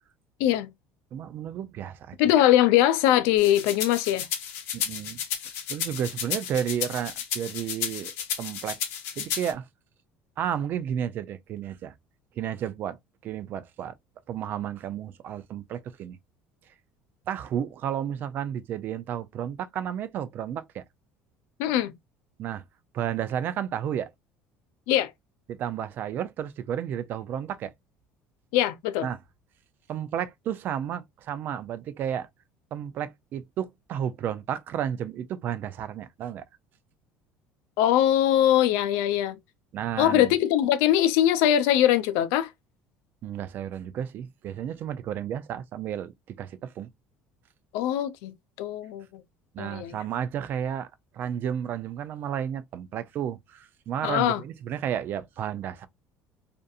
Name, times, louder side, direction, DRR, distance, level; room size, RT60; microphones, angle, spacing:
voice 1, 0.4-0.7 2.2-4.3 21.6-21.9 24.9-25.1 28.5-29.1 37.8-39.4 40.0-42.5 47.7-49.2 49.6-50.0 54.0-54.4, left 12 dB, 80° left, 0.4 m, -22 dB
voice 2, 1.1-2.2 4.7-5.2 5.7-8.8 9.2-9.7 10.4-11.9 12.4-13.9 14.3-16.2 17.3-20.8 22.4-22.6 22.9-24.1 25.5-27.7 29.0-29.2 29.9-32.3 32.7-36.4 39.7-40.3 43.2-46.9 49.5-55.9, right 9 dB, 45° right, 0.4 m, -32 dB
sound 1, 3.4-9.5, left 8 dB, 65° left, 0.8 m, -33 dB
2.6 x 2.5 x 2.3 m
cardioid pair, 135°, 5 cm